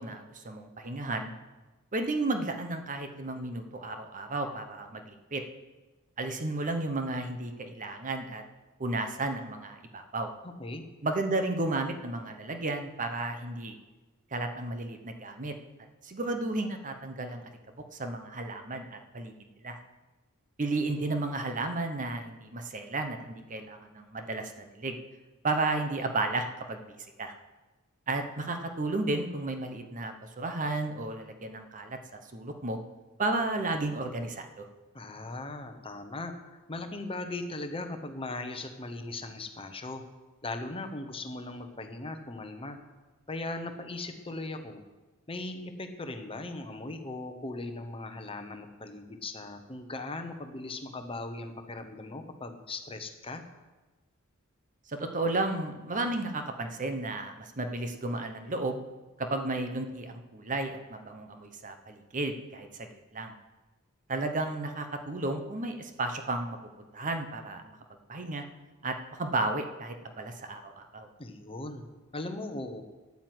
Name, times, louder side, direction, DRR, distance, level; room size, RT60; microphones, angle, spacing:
voice 1, 0.0-1.3 1.9-5.4 6.2-8.4 8.8-10.3 11.0-13.8 14.3-15.5 16.0-19.3 19.6-19.8 20.6-25.0 25.4-27.3 28.1-32.0 32.3-32.8 33.2-34.7 54.9-58.8 59.2-62.9 63.1-63.3 64.1-67.8 68.1-68.5 68.8-71.1, right 2 dB, 35° right, 6 dB, 1.0 m, -33 dB
voice 2, 34.9-36.3 36.7-40.0 40.4-42.8 43.3-44.8 45.3-53.4 71.2-71.9 72.1-72.8, left 2 dB, 25° left, 7 dB, 1.0 m, -38 dB
9.6 x 8.9 x 7.9 m, 1.2 s
head